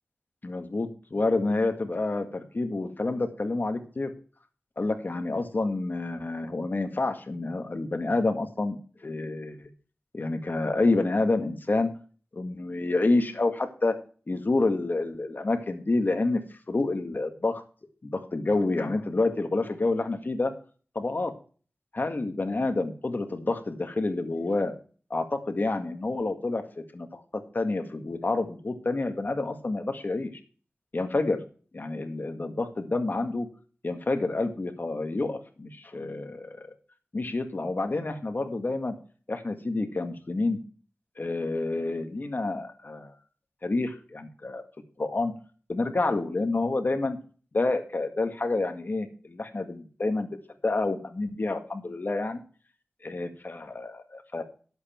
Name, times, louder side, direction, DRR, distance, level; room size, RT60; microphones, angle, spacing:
voice 1, 0.4-4.1 4.8-8.8 9.0-9.7 10.1-11.9 12.3-13.9 14.3-16.4 16.7-17.6 18.0-20.5 21.0-21.3 21.9-24.7 25.1-27.2 27.5-30.3 30.9-31.4 31.7-33.5 33.8-36.7 37.1-38.9 39.3-40.6 41.2-43.1 43.6-44.6 45.0-45.3 45.7-47.2 47.5-50.3 50.6-52.4 53.0-54.4, left 2 dB, 50° left, 6 dB, 1.9 m, -28 dB
11.5 x 8.1 x 4.5 m, 0.40 s
wide cardioid pair, 65°, 4 cm